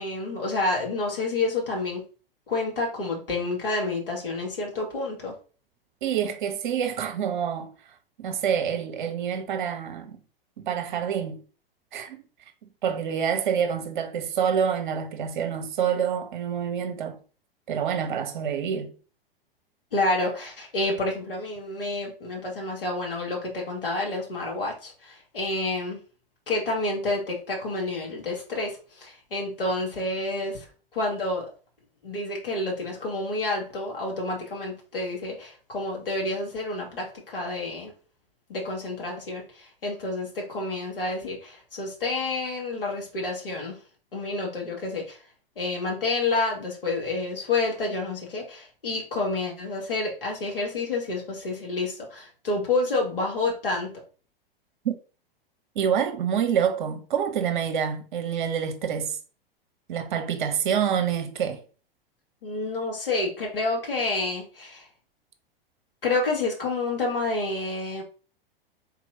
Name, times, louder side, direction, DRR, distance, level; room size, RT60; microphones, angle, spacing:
voice 1, 0.0-2.0 2.5-5.3 19.9-26.0 26.5-30.7 30.9-31.5 32.0-37.9 38.5-43.8 44.1-45.2 45.6-54.0 62.4-64.9 66.0-68.0, left 2 dB, 70° left, 2.1 m, -29 dB
voice 2, 6.0-7.7 8.2-10.2 10.6-11.4 11.9-12.2 12.8-17.2 17.7-18.9 54.8-54.9 55.7-59.2 59.9-61.6, right 8 dB, 55° right, 0.9 m, -27 dB
4.5 x 4.0 x 2.7 m
figure-of-eight pair, 95°, 29 cm